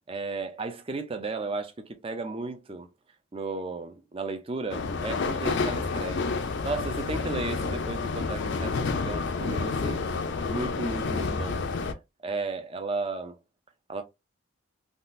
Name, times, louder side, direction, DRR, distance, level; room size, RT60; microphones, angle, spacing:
voice 1, 0.1-2.9 3.3-6.3 6.6-10.0 10.5-11.6 12.2-13.4 13.9-14.0, right 3 dB, 25° right, 0.5 m, -34 dB
sound 1, 4.7-11.9, left 4 dB, 55° left, 0.4 m, -29 dB
3.6 x 2.4 x 2.5 m
head